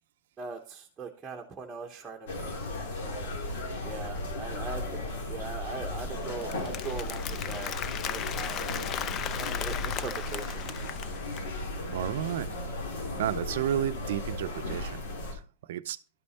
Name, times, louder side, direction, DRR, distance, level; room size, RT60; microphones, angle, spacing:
voice 1, 0.4-2.6 3.0-3.3 3.8-7.7 8.0-9.1 9.4-10.7, right 5 dB, 15° right, 1.0 m, -41 dB
sound 1, 2.3-15.3, left 2 dB, 75° left, 2.9 m, -35 dB
Applause, 5.7-11.5, left 9 dB, 30° left, 0.5 m, -37 dB
voice 2, 11.9-12.6 13.2-15.0 15.7-16.0, right 11 dB, 70° right, 0.5 m, -31 dB
12.0 x 5.4 x 4.2 m
supercardioid pair, 155°, 0 cm